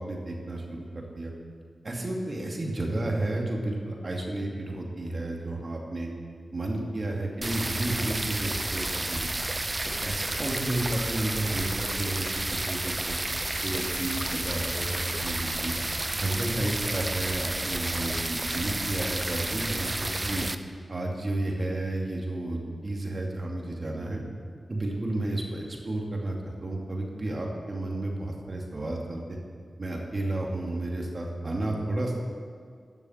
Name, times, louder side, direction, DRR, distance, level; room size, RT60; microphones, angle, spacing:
voice 1, 0.0-1.3 1.8-6.1 6.5-9.3 10.0-13.2 13.6-15.8 16.1-20.5 20.9-24.2 24.7-29.4 29.8-32.2, right 1 dB, 45° right, 0 dB, 2.5 m, -32 dB
sound 1, 7.4-20.6, right 2 dB, 25° right, 0.7 m, -31 dB
12.5 x 7.2 x 9.0 m, 2.1 s
cardioid pair, 65°, 0 cm